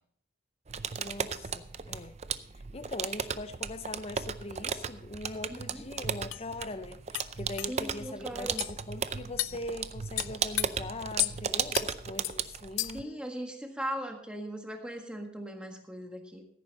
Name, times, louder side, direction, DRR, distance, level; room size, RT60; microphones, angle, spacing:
sound 1, 0.7-13.0, right 6 dB, 35° right, 0.5 m, -36 dB
voice 1, 1.0-2.2 2.7-13.1, left 2 dB, 30° left, 0.6 m, -41 dB
voice 2, 5.5-5.8 7.7-8.6 12.9-16.4, equal, 5° right, 1.6 m, -39 dB
sound 2, 5.7-5.8 6.3-6.4 7.1-7.3 7.6-7.7 8.6-8.7 9.4-9.6 10.2-10.7 11.2-11.4 11.7-11.9 12.2-12.4 12.8-13.1, left 16 dB, 85° left, 0.5 m, -32 dB
15.5 x 9.2 x 4.1 m
head